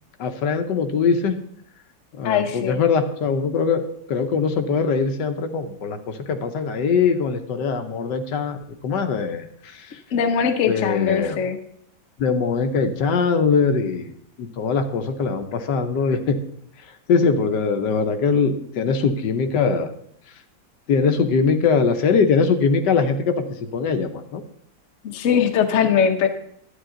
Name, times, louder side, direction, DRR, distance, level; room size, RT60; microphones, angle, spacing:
voice 1, 0.2-1.3 2.1-3.8 4.1-10.0 10.7-11.4 12.2-14.1 14.4-16.4 17.1-19.9 20.9-24.4, left 5 dB, 80° left, 7 dB, 1.4 m, -22 dB
voice 2, 2.2-2.8 10.1-11.6 25.0-26.3, left 7 dB, 55° left, 6 dB, 1.1 m, -21 dB
11.5 x 9.6 x 3.8 m, 0.69 s
omnidirectional pair, 1.9 m